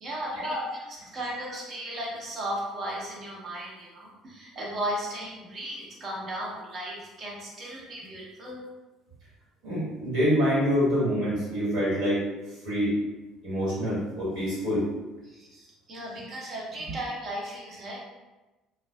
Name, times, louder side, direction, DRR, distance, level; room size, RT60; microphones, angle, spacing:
voice 1, 0.0-8.6 15.2-18.0, right 1 dB, 45° right, -3 dB, 0.8 m, -36 dB
voice 2, 9.6-12.2 12.6-12.9 13.4-14.8, equal, 70° right, -7 dB, 1.4 m, -26 dB
2.4 x 2.3 x 2.2 m, 1.1 s
hypercardioid pair, 60°, 0 cm